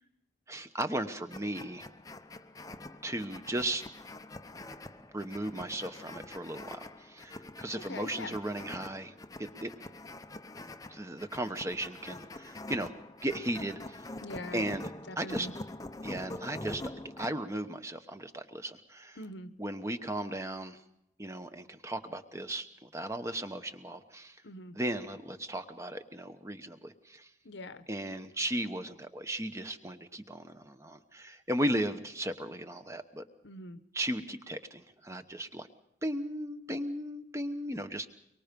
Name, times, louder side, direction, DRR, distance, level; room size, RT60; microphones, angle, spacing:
voice 1, 0.5-1.9 3.0-3.8 5.1-9.1 9.4-9.7 10.9-12.9 13.2-14.0 14.5-15.5 16.0-16.8 17.2-19.2 19.6-20.8 21.2-24.4 24.7-27.3 27.9-33.2 33.9-35.7 36.0-38.1, right 1 dB, 15° right, 8 dB, 1.0 m, -36 dB
sound 1, 1.3-17.3, left 2 dB, 20° left, 0.7 m, -45 dB
voice 2, 7.7-8.4 14.2-14.6 15.1-15.5 19.2-19.5 24.4-24.8 27.4-27.8 33.4-33.8, left 2 dB, 70° left, 11 dB, 1.1 m, -43 dB
24.0 x 23.5 x 5.3 m, 0.78 s
head